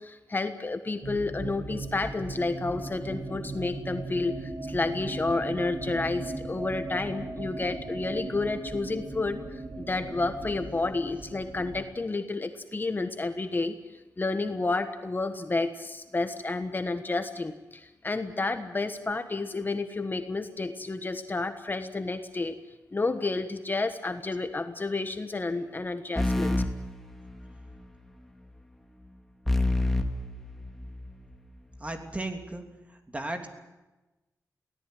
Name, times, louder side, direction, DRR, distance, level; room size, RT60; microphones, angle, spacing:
voice 1, 0.0-22.6 22.9-26.6, left 3 dB, 30° left, 8 dB, 1.3 m, -31 dB
sound 1, 1.0-11.8, right 2 dB, 50° right, 3.3 m, -38 dB
sound 2, 26.2-27.8 29.5-31.2, left 2 dB, 5° left, 2.3 m, -28 dB
voice 2, 31.8-32.6 33.1-33.5, right 2 dB, 20° right, 5 dB, 3.1 m, -34 dB
23.5 x 17.5 x 9.2 m, 1.1 s
wide cardioid pair, 90°, 6 cm